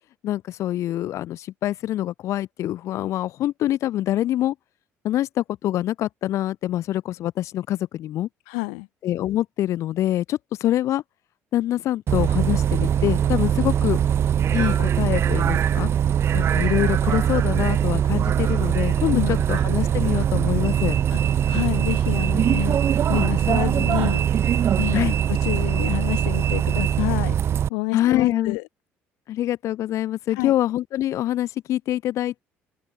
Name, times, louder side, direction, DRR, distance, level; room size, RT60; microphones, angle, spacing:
voice 1, 0.2-4.6 5.0-8.3 9.0-11.0 11.5-14.0 14.5-15.9 16.3-21.0 24.9-25.2 27.9-28.6 29.3-32.4, left 13 dB, 65° left, 2.0 m, -25 dB
voice 2, 8.5-8.9 19.1-19.3 21.1-21.2 21.5-22.8 23.1-24.2 24.8-27.4 27.7-28.6 30.4-30.5, left 40 dB or more, 90° left, 1.1 m, -28 dB
Bus, 12.1-27.7, right 9 dB, 50° right, 1.9 m, -21 dB
supercardioid pair, 80°, 5 cm